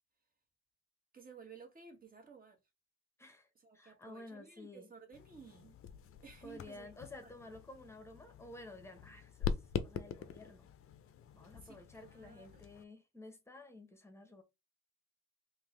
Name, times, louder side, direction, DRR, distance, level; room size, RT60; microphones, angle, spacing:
voice 1, 1.1-2.6 3.5-5.8 6.2-6.9 7.2-7.3 11.5-12.7, right 5 dB, 30° right, 1.2 m, -56 dB
voice 2, 3.7-4.9 6.4-9.6 9.8-10.7 11.3-14.4, left 2 dB, 10° left, 0.9 m, -52 dB
sound 1, 5.1-12.8, left 7 dB, 50° left, 0.5 m, -44 dB
3.5 x 2.7 x 3.2 m
cardioid pair, 100°, 30 cm